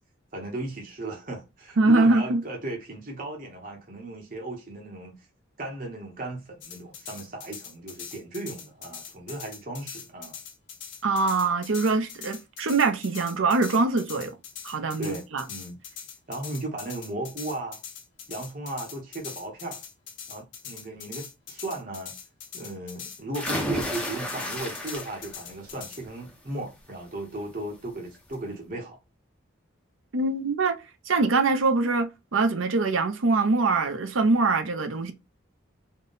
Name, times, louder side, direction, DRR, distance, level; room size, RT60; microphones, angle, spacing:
voice 1, 0.3-5.2 5.6-10.4 15.0-15.8 16.3-17.8 18.3-19.8 20.3-22.2 22.5-29.0, right 2 dB, 40° right, 0.8 m, -36 dB
voice 2, 1.8-2.4 11.0-14.3 14.6-15.4 30.1-30.8 31.1-35.1, right 3 dB, 80° right, 0.6 m, -23 dB
sound 1, 6.6-26.0, left 8 dB, 70° left, 1.0 m, -42 dB
sound 2, 23.3-25.4 25.8-26.3 27.7-27.8 28.1-28.2, left 1 dB, 5° left, 0.7 m, -32 dB
3.6 x 2.2 x 3.9 m
head